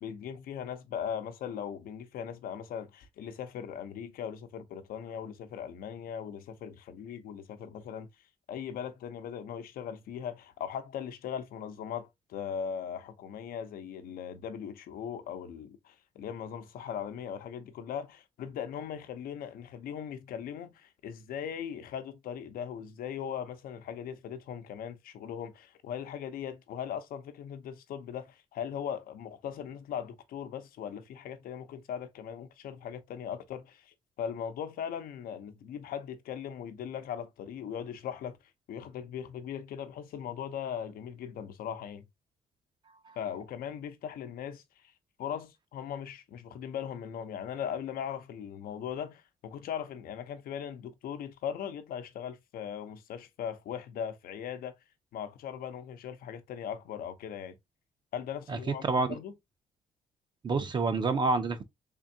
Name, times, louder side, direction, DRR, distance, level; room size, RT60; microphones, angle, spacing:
voice 1, 0.0-8.1 8.5-38.4 38.7-42.1 43.2-44.6 45.2-54.7 55.1-57.6 58.1-59.3, left 8 dB, 80° left, 0.7 m, -39 dB
voice 2, 58.5-59.1 60.4-61.6, right 3 dB, 30° right, 0.5 m, -28 dB
3.6 x 3.4 x 2.7 m
cardioid pair, 135°, 15 cm